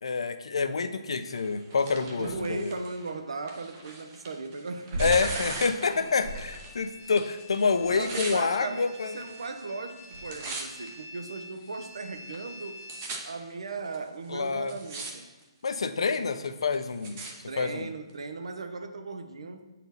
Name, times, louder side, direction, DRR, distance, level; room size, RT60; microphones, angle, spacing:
voice 1, 0.0-2.7 5.0-9.2 14.3-14.7 15.6-17.2 17.6-17.9, left 4 dB, 75° left, 0.6 m, -27 dB
Tearing, 1.3-6.8 7.0-8.4 9.1-9.6 9.9-10.9 11.5-11.6 12.3-12.4 12.6-13.2 13.9-14.0 14.5-15.1 15.4-15.9 16.4-17.3 18.1-18.2, right 3 dB, 20° right, 0.7 m, -40 dB
voice 2, 2.0-5.4 5.8-6.1 7.9-12.8 13.2-15.3 17.5-19.7, right 3 dB, 75° right, 0.7 m, -37 dB
sound 1, 2.2-2.7 4.9-6.9 7.8-8.2 9.1-9.3 10.1-10.5, right 3 dB, 50° right, 1.3 m, -38 dB
sound 2, 5.8-13.1, left 2 dB, 40° left, 0.8 m, -48 dB
8.3 x 4.2 x 4.0 m
hypercardioid pair, 175°, 3 cm